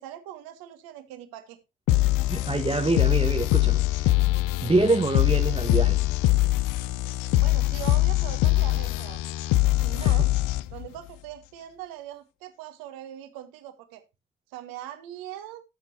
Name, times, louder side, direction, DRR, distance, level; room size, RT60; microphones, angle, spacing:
voice 1, 0.0-1.6 7.4-9.2 9.8-10.3 10.7-14.0 14.5-15.6, right 12 dB, 65° right, 1.7 m, -41 dB
sound 1, 1.9-10.9, left 17 dB, 55° left, 0.7 m, -23 dB
voice 2, 2.2-4.1 4.6-6.0 10.0-10.1, right 2 dB, 15° right, 1.2 m, -25 dB
13.5 x 7.5 x 2.7 m
hypercardioid pair, 50°, 38 cm